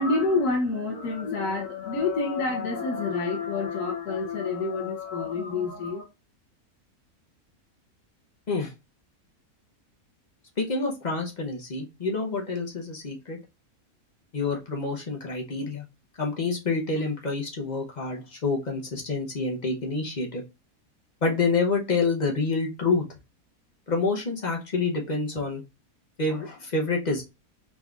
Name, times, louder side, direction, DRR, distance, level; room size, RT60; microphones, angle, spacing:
voice 1, 0.0-6.0, left 3 dB, 80° left, 1.3 m, -28 dB
voice 2, 10.6-13.4 14.3-15.8 16.2-20.4 21.2-23.0 23.9-25.6 26.2-27.2, left 3 dB, 40° left, 0.7 m, -27 dB
4.0 x 3.5 x 2.3 m
omnidirectional pair, 1.6 m